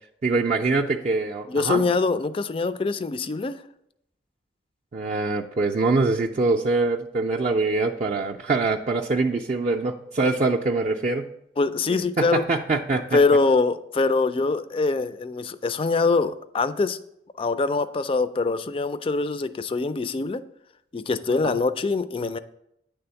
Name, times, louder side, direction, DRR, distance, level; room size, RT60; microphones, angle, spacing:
voice 1, 0.2-1.8 4.9-11.3 11.9-13.2 21.4-21.6, right 3 dB, 40° right, -1 dB, 0.4 m, -24 dB
voice 2, 1.5-3.6 11.6-12.4 13.1-17.0 17.4-20.4 20.9-22.4, left 3 dB, 30° left, 13 dB, 0.3 m, -23 dB
9.5 x 3.5 x 6.8 m, 0.78 s
head